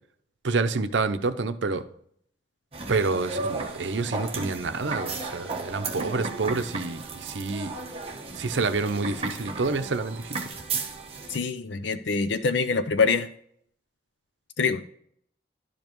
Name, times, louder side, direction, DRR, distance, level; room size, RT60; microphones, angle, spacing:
voice 1, 0.4-1.8 2.9-7.7 8.4-10.4, right 3 dB, 90° right, 10 dB, 0.7 m, -28 dB
sound 1, 2.7-11.4, right 3 dB, 30° right, 1.1 m, -34 dB
voice 2, 11.3-13.3 14.6-14.8, left 4 dB, 80° left, 9 dB, 0.5 m, -24 dB
11.5 x 5.2 x 3.0 m, 0.65 s
head